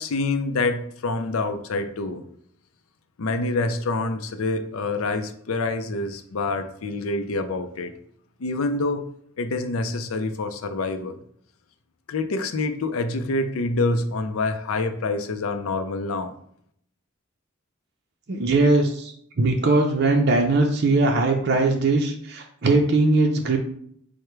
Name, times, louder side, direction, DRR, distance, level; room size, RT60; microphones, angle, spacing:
voice 1, 0.0-2.2 3.2-7.9 8.4-9.1 9.4-11.2 12.1-16.4, left 3 dB, 80° left, 8 dB, 0.5 m, -26 dB
voice 2, 18.3-23.6, right 2 dB, 50° right, 1 dB, 0.5 m, -20 dB
4.8 x 2.1 x 4.5 m, 0.67 s
head